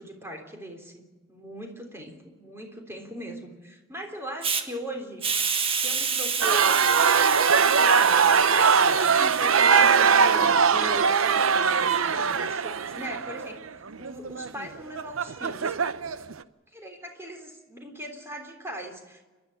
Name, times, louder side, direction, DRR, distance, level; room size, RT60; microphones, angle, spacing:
voice 1, 0.0-5.3 5.7-6.8 7.4-8.0 8.3-11.8 12.0-13.7 14.0-15.9 16.7-19.3, equal, 15° right, 3 dB, 3.6 m, -39 dB
Hiss, 4.4-4.6 5.2-10.4, right 5 dB, 30° right, 1.5 m, -30 dB
sound 1, 6.4-16.3, right 6 dB, 85° right, 0.8 m, -21 dB
29.5 x 12.0 x 8.5 m, 1.2 s
head